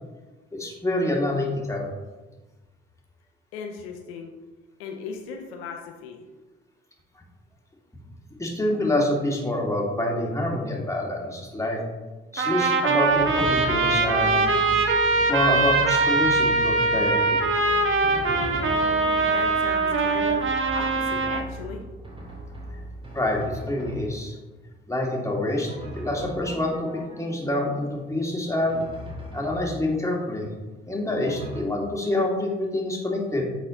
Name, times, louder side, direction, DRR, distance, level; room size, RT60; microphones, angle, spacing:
voice 1, 0.5-1.9 8.4-11.8 12.3-14.5 15.3-17.4 23.1-24.4 24.9-26.9 27.2-28.9 29.3-30.5 30.9-33.4, left 1 dB, 10° left, -2 dB, 2.2 m, -26 dB
voice 2, 3.5-4.3 4.8-6.2 19.3-20.4 20.7-21.8, left 5 dB, 85° left, 2 dB, 0.7 m, -37 dB
Trumpet, 12.4-21.4, right 3 dB, 45° right, 1.1 m, -22 dB
Drum, 13.1-24.5 25.7-27.6 28.7-30.2 31.3-31.6, right 1 dB, 15° right, 1.8 m, -38 dB
8.2 x 4.1 x 3.8 m, 1.2 s
hypercardioid pair, 50°, 30 cm